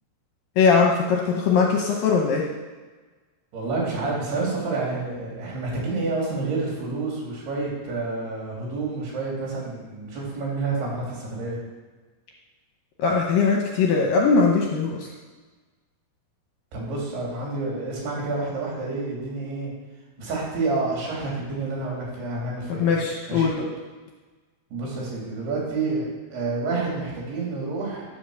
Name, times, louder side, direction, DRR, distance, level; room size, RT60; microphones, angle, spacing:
voice 1, 0.6-2.5 13.0-15.1 22.7-23.7, left 5 dB, 75° left, 1 dB, 2.2 m, -20 dB
voice 2, 3.5-11.6 16.7-19.7 20.2-23.0 23.3-23.5 24.7-28.1, right 3 dB, 70° right, -4 dB, 5.0 m, -29 dB
12.5 x 5.0 x 6.7 m, 1.3 s
omnidirectional pair, 4.8 m